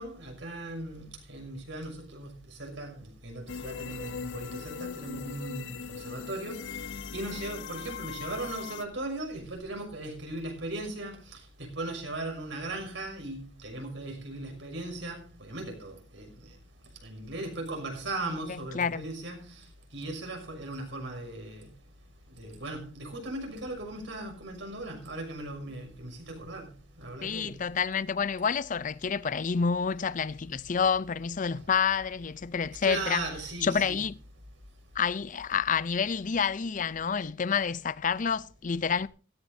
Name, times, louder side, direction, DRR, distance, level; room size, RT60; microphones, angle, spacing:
voice 1, 0.0-16.3 17.0-19.7 19.9-21.7 22.4-26.7 27.0-27.6 32.8-34.0, right 2 dB, 75° right, 6.1 m, -38 dB
sound 1, 3.5-8.8, left 6 dB, 75° left, 0.7 m, -39 dB
voice 2, 18.7-19.1 27.2-33.2 33.6-34.2 35.0-39.1, left 6 dB, 45° left, 0.5 m, -28 dB
17.0 x 15.5 x 2.7 m
head